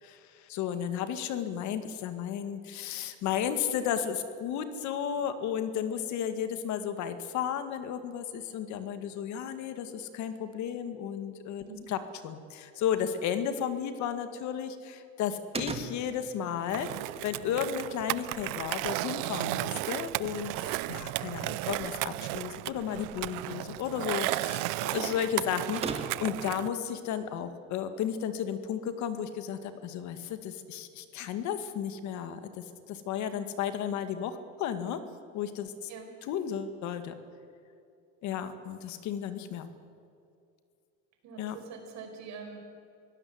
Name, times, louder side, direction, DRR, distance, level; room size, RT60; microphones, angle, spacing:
voice 1, 0.0-12.0 12.2-16.9 17.2-35.0 35.3-35.9 36.3-37.1 38.2-39.7 41.4-41.6, left 8 dB, 60° left, 10 dB, 1.9 m, -33 dB
sound 1, 15.5-26.4, right 4 dB, 20° right, 1.6 m, -45 dB
Skateboard, 16.7-26.7, right 20 dB, 85° right, 0.6 m, -34 dB
voice 2, 41.2-42.6, right 5 dB, 60° right, 4 dB, 4.9 m, -44 dB
23.5 x 17.0 x 8.0 m, 2.4 s
cardioid pair, 150°, 32 cm